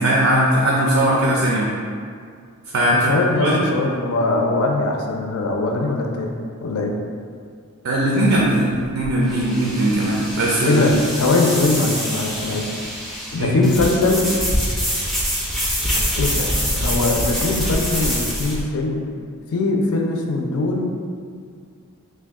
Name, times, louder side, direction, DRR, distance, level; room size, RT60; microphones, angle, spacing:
voice 1, 0.0-1.7 2.7-3.1 3.4-3.6 7.8-10.8 13.4-13.6, right 1 dB, 65° right, -3 dB, 0.4 m, -19 dB
voice 2, 2.9-6.9 10.7-10.9 11.2-12.7 13.3-14.3 16.2-19.0 19.5-20.9, left 2 dB, 75° left, 1 dB, 0.4 m, -21 dB
sound 1, 8.2-18.6, equal, ahead, 0.4 m, -25 dB
3.3 x 2.2 x 3.5 m, 2.1 s
head